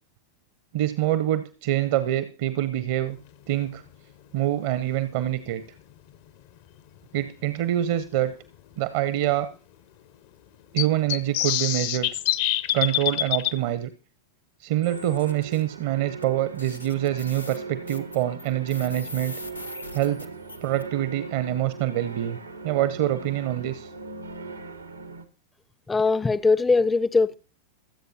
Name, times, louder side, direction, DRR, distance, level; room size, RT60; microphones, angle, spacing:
voice 1, 0.7-3.2 3.5-3.8 4.3-5.6 7.1-8.3 8.8-9.5 10.7-12.1 12.7-13.9 14.6-19.3 19.9-20.3 20.6-22.4 22.6-23.9, right 13 dB, 50° right, 0.7 m, -25 dB
sound 1, 5.2-5.3 7.3-7.4 7.9-8.0 8.2-8.3 10.8-13.5, left 13 dB, 50° left, 0.7 m, -25 dB
sound 2, 14.8-15.6 16.2-16.3 16.6-20.8, left 2 dB, 85° left, 0.9 m, -41 dB
sound 3, 14.9-25.3, right 4 dB, 80° right, 1.0 m, -40 dB
voice 2, 25.9-27.4, left 4 dB, 10° left, 0.5 m, -21 dB
23.0 x 8.0 x 2.8 m
figure-of-eight pair, 90°, 0 cm